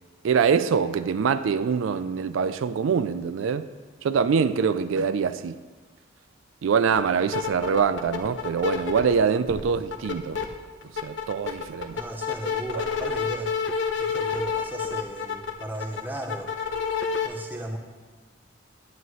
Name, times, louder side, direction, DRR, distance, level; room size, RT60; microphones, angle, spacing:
voice 1, 0.2-3.7 4.0-5.6 6.6-10.4 11.0-12.0, right 6 dB, 85° right, 0.4 m, -24 dB
sound 1, 6.9-7.0 7.3-9.1 9.5-10.4 10.8-17.3, left 6 dB, 70° left, 0.8 m, -28 dB
voice 2, 11.9-13.5 14.0-16.5 17.2-17.8, right 1 dB, 10° right, 0.8 m, -36 dB
10.5 x 9.3 x 3.2 m
head